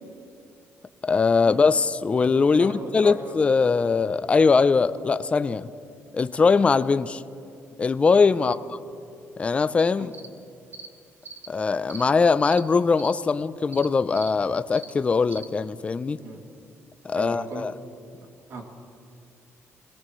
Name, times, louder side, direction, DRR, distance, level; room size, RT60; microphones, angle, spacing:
voice 1, 1.0-5.7 6.1-7.2 7.8-8.6 9.4-10.1 11.5-16.2 17.0-17.7, left 4 dB, 25° left, 13 dB, 0.4 m, -21 dB
voice 2, 2.5-3.3 8.4-8.6 10.0-10.1 16.2-16.4 17.1-17.7 18.5-18.6, right 2 dB, 60° right, 2 dB, 2.4 m, -37 dB
sound 1, 10.1-10.3 10.7-10.9 11.2-11.5 11.9-12.0 12.5-12.6 13.0-13.1 13.7-13.9 14.1-14.3 14.7-14.9 15.3-15.5, right 4 dB, 40° right, 1.2 m, -41 dB
25.5 x 18.0 x 3.1 m, 2.5 s
cardioid pair, 125°, 5 cm